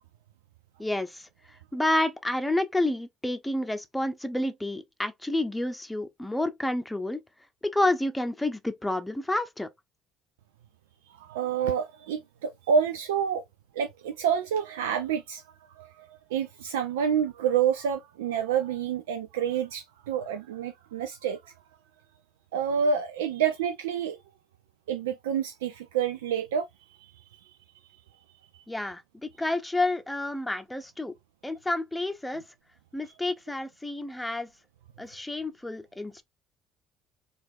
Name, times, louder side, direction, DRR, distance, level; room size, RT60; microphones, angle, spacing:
voice 1, 0.8-1.3 1.7-7.2 7.6-9.7 28.7-31.1 31.4-32.4 32.9-34.5 35.0-36.2, left 1 dB, 10° left, 0.7 m, -29 dB
voice 2, 11.1-13.4 13.7-15.4 15.7-21.5 22.5-24.2 24.9-27.6 28.5-28.6, right 7 dB, 80° right, 0.3 m, -28 dB
4.4 x 2.5 x 2.6 m
hypercardioid pair, 55°, 0 cm